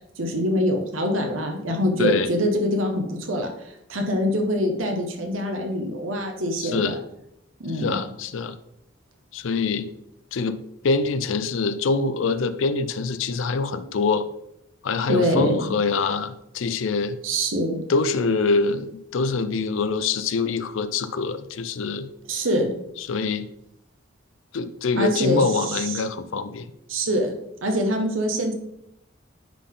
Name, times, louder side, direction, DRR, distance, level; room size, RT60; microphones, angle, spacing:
voice 1, 0.2-7.0 7.6-8.0 15.1-15.7 17.2-17.8 22.3-22.7 25.0-26.0 26.9-27.3 27.6-28.6, equal, 85° right, 4 dB, 1.3 m, -24 dB
voice 2, 2.0-2.3 6.6-7.0 7.8-8.5 9.3-9.9 10.3-14.3 14.8-17.2 17.9-22.1 23.0-23.5 24.5-26.7, left 4 dB, 75° left, 12 dB, 0.5 m, -24 dB
10.0 x 3.8 x 3.8 m, 0.78 s
head